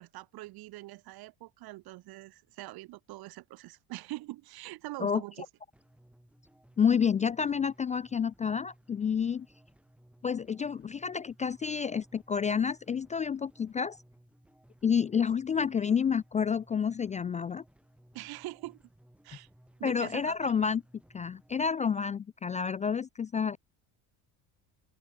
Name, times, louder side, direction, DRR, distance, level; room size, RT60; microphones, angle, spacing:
voice 1, 0.0-5.4 15.8-16.0 18.1-18.8 19.2-19.5 19.8-20.6, right 18 dB, 65° right, 2.5 m, -43 dB
sound 1, 5.7-21.7, right 1 dB, 5° right, 6.7 m, -61 dB
voice 2, 6.8-9.5 10.2-14.0 14.8-17.6 19.8-20.8 21.1-23.6, left 7 dB, 20° left, 0.4 m, -29 dB
cardioid pair, 130°, 40 cm